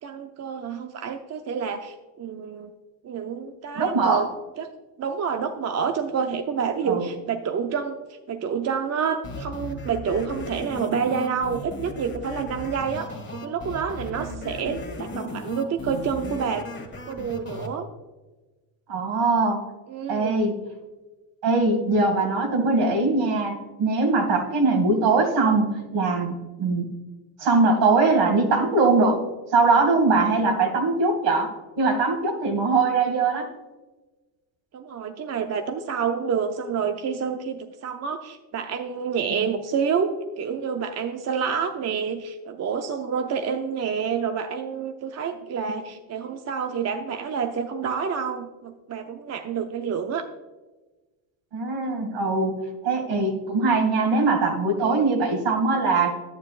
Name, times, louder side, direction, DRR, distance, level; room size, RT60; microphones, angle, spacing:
voice 1, 0.0-2.7 3.0-4.3 4.6-4.7 5.0-16.7 17.1-17.9 19.9-20.5 34.7-50.2 54.8-55.3, right 6 dB, 35° right, 6 dB, 0.6 m, -28 dB
voice 2, 3.8-4.3 6.9-7.0 14.2-14.4 18.9-19.6 20.1-20.6 21.4-26.9 27.4-29.2 29.5-33.5 51.5-56.2, right 3 dB, 65° right, 3 dB, 2.4 m, -22 dB
sound 1, 9.2-17.7, left 2 dB, 25° left, 1.7 m, -36 dB
11.0 x 9.6 x 2.5 m, 1.2 s
cardioid pair, 100°, 46 cm